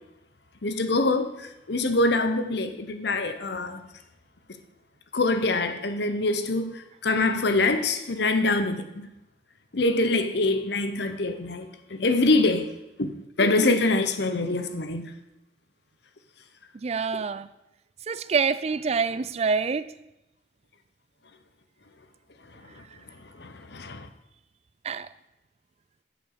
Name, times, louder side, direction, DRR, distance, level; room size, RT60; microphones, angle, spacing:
voice 1, 0.6-3.8 5.1-9.1 9.7-12.7 13.0-13.1 13.4-15.1 23.4-24.1, left 2 dB, 60° left, 0.8 m, -25 dB
voice 2, 16.8-17.5 18.1-19.9 24.8-25.1, right 5 dB, 35° right, 0.3 m, -26 dB
7.8 x 6.0 x 6.6 m
head